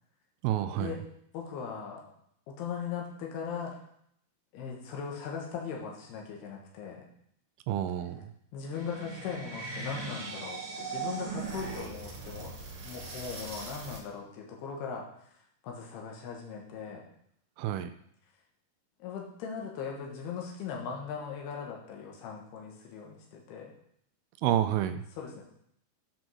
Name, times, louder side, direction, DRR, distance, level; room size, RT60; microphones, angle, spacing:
voice 1, 0.4-0.9 7.7-8.3 17.6-17.9 24.4-25.0, right 11 dB, 80° right, 9 dB, 2.4 m, -29 dB
voice 2, 1.3-2.1 2.5-3.8 4.5-7.0 8.5-17.0 19.0-23.7 25.1-25.4, left 6 dB, 90° left, -1 dB, 3.4 m, -39 dB
sound 1, 8.7-14.0, right 4 dB, 60° right, 3.1 m, -39 dB
8.8 x 5.2 x 6.2 m, 0.70 s
omnidirectional pair, 4.5 m